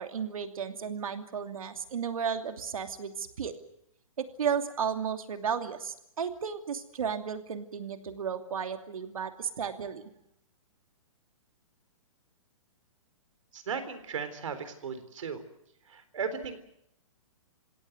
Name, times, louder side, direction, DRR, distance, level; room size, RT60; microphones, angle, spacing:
voice 1, 0.0-3.5 4.2-10.1, right 7 dB, 85° right, 6 dB, 2.8 m, -34 dB
voice 2, 13.5-15.4 15.9-16.6, right 6 dB, 70° right, 10 dB, 3.9 m, -36 dB
28.5 x 17.0 x 8.0 m, 0.76 s
hypercardioid pair, 175°, 17 cm